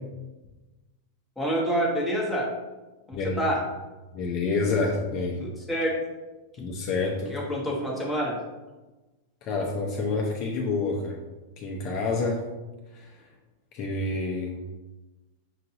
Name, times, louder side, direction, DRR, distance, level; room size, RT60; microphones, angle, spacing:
voice 1, 1.4-2.5 3.1-3.6 5.4-5.9 7.3-8.4, right 1 dB, 5° left, -3 dB, 1.1 m, -27 dB
voice 2, 3.1-3.5 4.1-5.4 6.6-7.3 9.4-11.2 11.6-12.4 12.9-13.2 13.7-14.6, left 3 dB, 45° left, 0 dB, 0.6 m, -28 dB
5.8 x 2.5 x 2.8 m, 1.1 s
hypercardioid pair, 120°, 0 cm